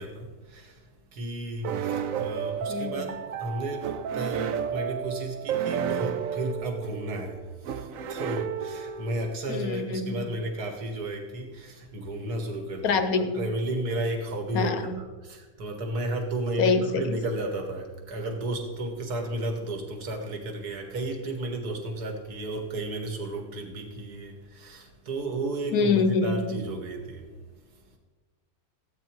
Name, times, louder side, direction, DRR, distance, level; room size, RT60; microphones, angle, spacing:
voice 1, 0.0-13.0 13.3-28.0, right 1 dB, 55° right, 4 dB, 2.2 m, -33 dB
sound 1, 1.6-9.3, right 8 dB, 75° right, 0.7 m, -32 dB
voice 2, 2.7-3.2 9.5-10.4 12.8-13.5 14.5-15.0 16.6-17.2 25.7-26.7, left 4 dB, 60° left, 10 dB, 1.1 m, -26 dB
14.5 x 9.2 x 4.6 m, 1.4 s
omnidirectional pair, 2.1 m